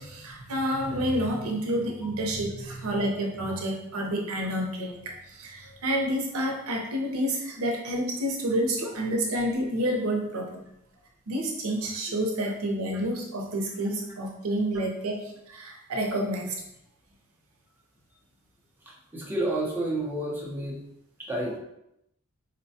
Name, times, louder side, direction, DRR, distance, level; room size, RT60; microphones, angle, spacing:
voice 1, 0.0-10.6 11.3-16.6, right 1 dB, 70° right, 1 dB, 0.7 m, -29 dB
voice 2, 18.9-20.8 21.2-21.6, right 1 dB, 10° right, -4 dB, 0.7 m, -30 dB
4.1 x 2.2 x 2.7 m, 0.82 s
head